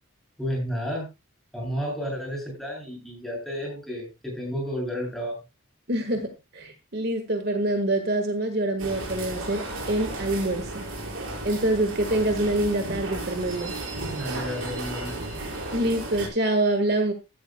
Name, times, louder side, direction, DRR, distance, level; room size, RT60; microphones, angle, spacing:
voice 1, 0.4-1.1 1.5-5.4 14.2-15.2, equal, ahead, -2 dB, 7.8 m, -31 dB
voice 2, 5.9-10.8 11.4-13.7 15.7-17.1, right 1 dB, 50° right, 6 dB, 1.7 m, -26 dB
sound 1, 8.8-16.3, right 2 dB, 75° right, 5.8 m, -34 dB
16.0 x 13.0 x 2.3 m, 0.26 s
head